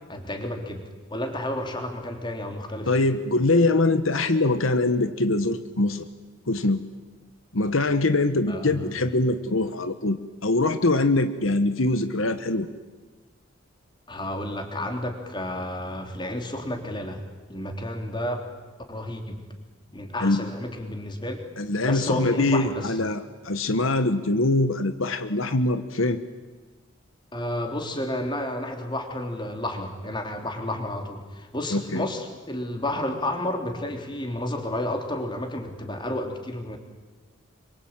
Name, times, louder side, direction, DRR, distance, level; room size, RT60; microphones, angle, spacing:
voice 1, 0.1-2.9 8.5-8.9 14.1-17.2 17.5-18.5 18.9-19.4 19.9-21.4 21.8-23.0 27.3-36.8, left 1 dB, 20° left, 4 dB, 3.5 m, -31 dB
voice 2, 2.9-6.0 6.5-6.8 7.5-12.7 20.2-20.5 21.6-26.2 31.7-32.0, left 2 dB, 80° left, 10 dB, 1.4 m, -23 dB
27.0 x 24.5 x 9.0 m, 1.3 s
head